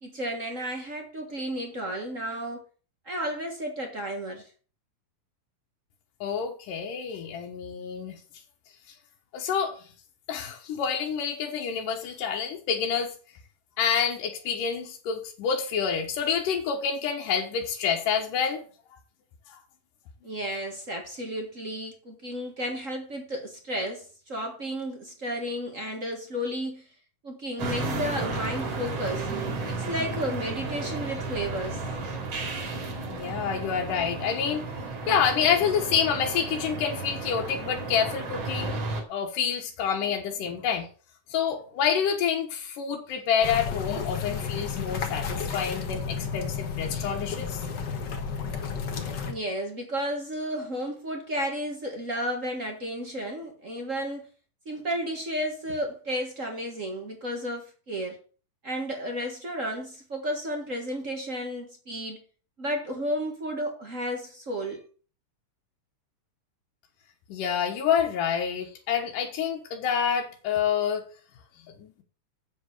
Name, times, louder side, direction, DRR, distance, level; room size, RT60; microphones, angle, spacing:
voice 1, 0.0-2.6 3.0-4.5 20.2-26.8 27.2-29.3 29.7-31.8 49.2-54.3 54.6-58.2 58.6-62.2 62.6-64.8, equal, 35° right, 1.4 m, -32 dB
voice 2, 6.2-8.2 9.3-9.8 10.3-13.1 13.8-18.6 33.1-34.7 35.1-38.8 39.1-40.9 41.3-47.6 67.3-71.1 71.8-71.9, left 7 dB, 90° left, 2.9 m, -28 dB
sound 1, 27.6-39.0, right 3 dB, 55° right, 3.4 m, -33 dB
sound 2, 43.4-49.3, left 6 dB, 45° left, 1.5 m, -32 dB
8.0 x 7.6 x 6.5 m
omnidirectional pair, 3.6 m